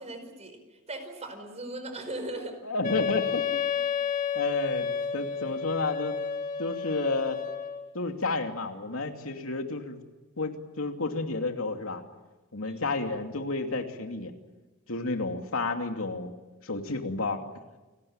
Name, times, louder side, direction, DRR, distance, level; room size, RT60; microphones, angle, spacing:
voice 1, 0.0-2.5 12.6-12.8, right 2 dB, 35° right, 8 dB, 5.0 m, -39 dB
voice 2, 2.6-3.6 4.3-4.9 5.1-6.2 6.6-7.4 7.9-10.0 10.4-12.0 12.5-14.3 14.9-16.3 16.6-17.4, left 3 dB, 90° left, 4 dB, 2.7 m, -31 dB
Wind instrument woodwind instrument, 2.8-7.9, left 6 dB, 40° left, 1.8 m, -31 dB
29.0 x 19.5 x 8.9 m, 1.2 s
head